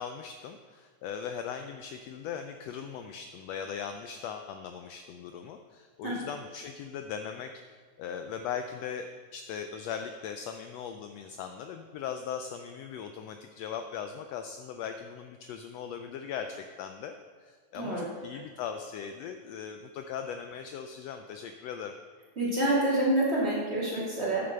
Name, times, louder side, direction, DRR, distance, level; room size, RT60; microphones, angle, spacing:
voice 1, 0.0-7.5 8.0-17.2 17.4-21.9, left 7 dB, 85° left, 6 dB, 1.4 m, -39 dB
voice 2, 17.7-18.1 22.4-24.4, right 1 dB, 20° right, -7 dB, 2.9 m, -27 dB
9.0 x 6.9 x 6.8 m, 1.5 s
omnidirectional pair, 3.5 m